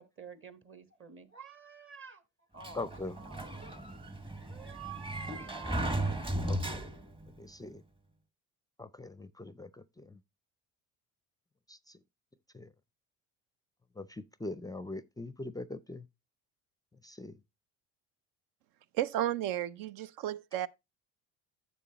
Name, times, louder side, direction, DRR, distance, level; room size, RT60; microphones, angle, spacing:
voice 1, 0.0-2.2 2.5-3.8 4.0-4.1 4.4-6.3, right 7 dB, 35° right, 1.4 m, -50 dB
Sliding door, 2.6-7.3, right 1 dB, 15° right, 1.0 m, -36 dB
voice 2, 2.7-3.1 6.5-6.8 7.4-7.8 8.8-10.2 11.7-11.8 12.5-12.7 14.0-16.0 17.0-17.3, left 2 dB, 10° left, 0.5 m, -42 dB
voice 3, 18.9-20.7, right 12 dB, 60° right, 0.6 m, -33 dB
10.0 x 7.1 x 2.9 m
hypercardioid pair, 70°, 37 cm